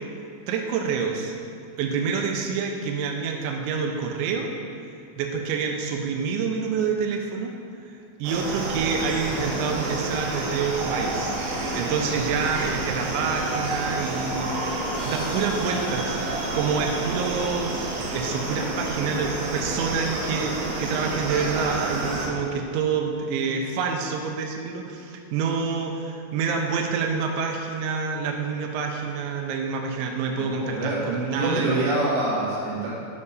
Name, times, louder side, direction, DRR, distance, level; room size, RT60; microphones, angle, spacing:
voice 1, 0.5-1.4 1.8-4.5 5.2-7.5 7.8-11.4 11.7-16.3 16.5-17.8 18.1-31.9, right 5 dB, 85° right, 2 dB, 2.7 m, -27 dB
sound 1, 8.2-22.3, right 2 dB, 70° right, 3.3 m, -29 dB
sound 2, 14.9-17.7, left 2 dB, 90° left, 5.0 m, -47 dB
voice 2, 30.6-31.0 31.3-32.9, right 2 dB, 50° right, -7 dB, 2.7 m, -25 dB
9.6 x 7.4 x 4.1 m, 2.5 s
omnidirectional pair, 6.0 m